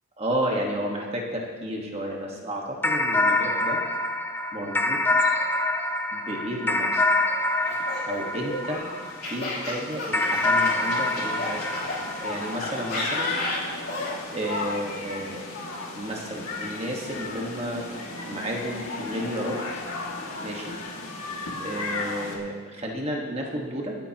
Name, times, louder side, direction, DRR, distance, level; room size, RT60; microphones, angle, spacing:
voice 1, 0.2-3.8 4.5-5.4 6.1-7.0 8.1-8.8 9.3-13.3 14.3-15.4 16.0-17.9 18.3-19.8 20.4-20.7 21.6-24.0, equal, 30° right, -1 dB, 1.5 m, -32 dB
sound 1, 2.8-9.4 10.1-12.9, left 2 dB, 10° left, 0.5 m, -25 dB
sound 2, 7.2-22.4, left 2 dB, 85° left, 2.2 m, -36 dB
Laughter, 7.6-12.0 12.6-14.2, left 2 dB, 50° left, 3.7 m, -32 dB
25.0 x 8.8 x 3.0 m, 1.5 s
head